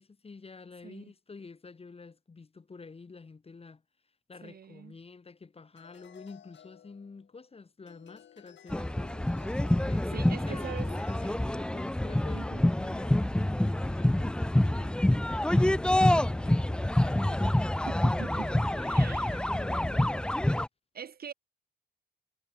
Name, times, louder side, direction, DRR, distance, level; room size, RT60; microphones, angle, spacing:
voice 1, 0.0-3.8 4.3-20.2, left 4 dB, 30° left, 6.0 m, -48 dB
voice 2, 4.4-4.9 10.1-10.9 12.3-12.7 17.9-18.5 18.9-19.3 20.9-21.3, right 7 dB, 50° right, 2.6 m, -42 dB
sound 1, 5.7-7.5 7.9-11.8, left 10 dB, 65° left, 7.3 m, -55 dB
sound 2, 8.7-20.7, left 1 dB, 5° left, 0.5 m, -27 dB
cardioid pair, 90°, 20 cm